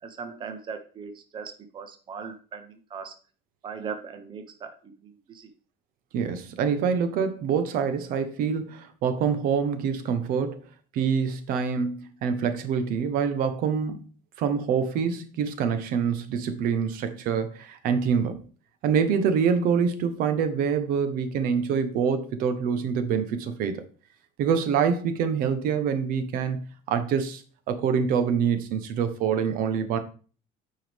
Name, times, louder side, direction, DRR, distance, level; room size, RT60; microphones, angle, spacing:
voice 1, 0.0-3.2 3.6-5.5, right 6 dB, 30° right, 0.8 m, -39 dB
voice 2, 6.1-10.6 10.9-14.0 14.4-18.4 18.8-23.8 24.4-26.6 26.9-30.0, right 6 dB, 70° right, 0.9 m, -25 dB
9.2 x 4.7 x 3.4 m
cardioid pair, 145°, 15 cm